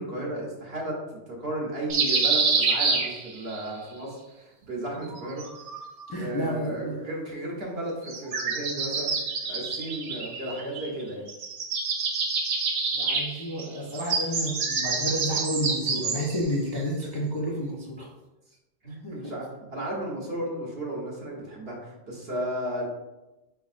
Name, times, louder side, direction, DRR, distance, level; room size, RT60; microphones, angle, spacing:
voice 1, 0.0-5.6 6.2-9.1 9.4-11.3 18.8-22.9, right 1 dB, 60° right, -2 dB, 1.3 m, -34 dB
sound 1, 1.9-3.6 5.0-6.1 8.0-11.0 11.3-16.5, right 4 dB, 80° right, 1.0 m, -27 dB
voice 2, 6.1-7.0 12.9-18.1 18.9-19.3, equal, 30° left, -5 dB, 0.4 m, -31 dB
5.1 x 3.5 x 2.4 m, 1.0 s
omnidirectional pair, 1.2 m